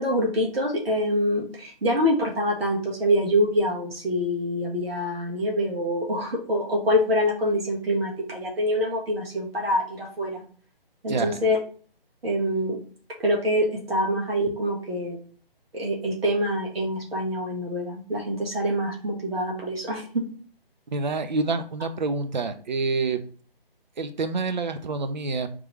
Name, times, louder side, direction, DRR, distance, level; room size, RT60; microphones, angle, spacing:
voice 1, 0.0-10.4 11.0-11.6 12.2-12.8 13.2-15.2 15.7-20.2, equal, 75° right, -1 dB, 1.4 m, -25 dB
voice 2, 11.1-11.4 20.9-23.2 24.0-25.5, right 3 dB, 50° right, 9 dB, 0.5 m, -27 dB
3.7 x 3.1 x 3.1 m, 0.43 s
figure-of-eight pair, 155°, 30 cm